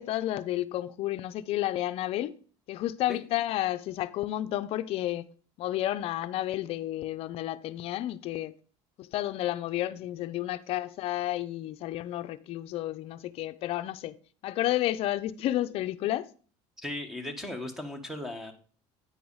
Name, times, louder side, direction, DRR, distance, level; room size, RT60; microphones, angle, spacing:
voice 1, 0.0-2.3 2.7-5.3 5.6-8.5 9.0-14.1 14.4-16.2, left 14 dB, 55° left, 0.6 m, -31 dB
voice 2, 16.8-18.5, left 1 dB, 5° right, 1.4 m, -37 dB
9.5 x 4.6 x 5.5 m
cardioid pair, 130°, 12 cm